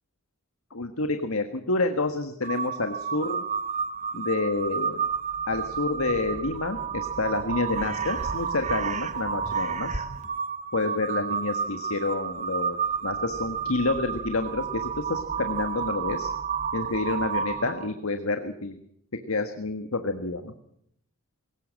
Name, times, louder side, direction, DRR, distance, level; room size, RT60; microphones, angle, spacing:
voice 1, 0.7-3.4 4.1-5.0 5.5-10.0 10.7-12.8 13.0-16.3 16.7-18.8 19.3-20.6, left 3 dB, 85° left, 7 dB, 1.5 m, -29 dB
Crow, 2.4-17.9, right 6 dB, 35° right, 1.1 m, -31 dB
21.0 x 18.5 x 7.5 m, 0.70 s
head